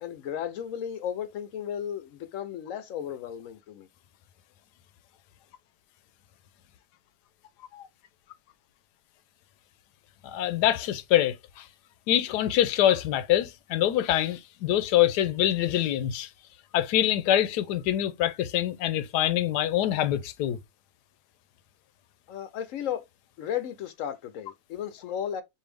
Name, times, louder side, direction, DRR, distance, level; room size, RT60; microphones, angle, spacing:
voice 1, 0.0-3.9 22.3-23.1 23.4-25.4, left 9 dB, 70° left, 0.8 m, -34 dB
voice 2, 10.2-11.7 12.1-16.3 16.7-20.6, left 12 dB, 85° left, 1.2 m, -25 dB
4.5 x 2.7 x 3.3 m
omnidirectional pair, 1.7 m